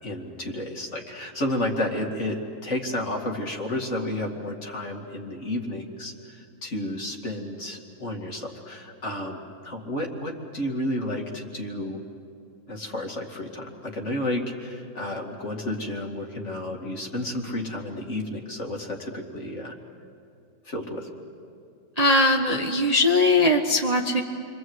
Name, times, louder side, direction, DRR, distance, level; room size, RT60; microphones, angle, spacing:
voice 1, 0.0-12.0 12.7-19.8 20.6-21.1, left 1 dB, 40° left, 1 dB, 2.6 m, -31 dB
voice 2, 22.0-24.2, left 2 dB, 25° right, 2 dB, 1.1 m, -20 dB
29.0 x 24.5 x 8.0 m, 2.5 s
omnidirectional pair, 2.0 m